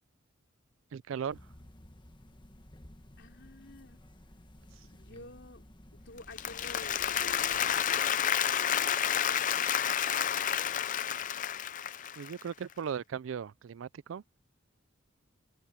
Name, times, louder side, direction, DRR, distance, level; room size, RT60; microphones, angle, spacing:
voice 1, 0.9-1.4 12.2-14.2, right 7 dB, 75° right, 0.4 m, -37 dB
sound 1, 1.3-8.0, left 1 dB, 25° left, 1.4 m, -54 dB
voice 2, 3.2-4.0 4.8-5.6 6.1-9.0, left 2 dB, 60° left, 4.3 m, -50 dB
Applause, 6.2-12.4, left 9 dB, 40° left, 0.5 m, -30 dB
head